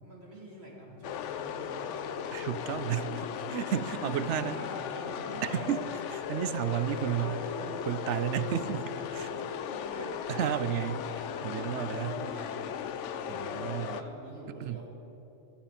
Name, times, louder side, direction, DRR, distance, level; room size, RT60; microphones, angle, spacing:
voice 1, 0.0-2.3 2.7-3.1 4.1-5.9 6.9-7.9 9.3-10.4 11.1-12.8 13.2-14.9, right 1 dB, 55° right, -4 dB, 3.3 m, -46 dB
sound 1, 1.0-14.0, left 8 dB, 80° left, 1.0 m, -37 dB
voice 2, 2.3-4.6 5.4-7.3 7.9-9.3 10.3-12.2 13.3-14.0 14.5-14.8, right 10 dB, 75° right, 14 dB, 0.9 m, -32 dB
16.0 x 13.5 x 5.1 m, 2.9 s
omnidirectional pair, 1.2 m